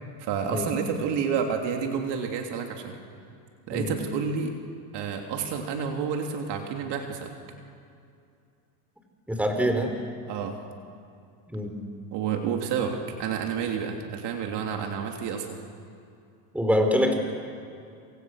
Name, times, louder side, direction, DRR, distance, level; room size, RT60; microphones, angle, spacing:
voice 1, 0.2-3.0 3.7-4.5 4.9-7.3 10.3-10.6 12.1-15.5, right 6 dB, 55° right, 3 dB, 3.2 m, -29 dB
voice 2, 9.3-9.9 11.5-11.7 16.5-17.1, equal, 5° right, 4 dB, 4.6 m, -24 dB
28.0 x 27.5 x 6.5 m, 2.5 s
supercardioid pair, 105°, 50 cm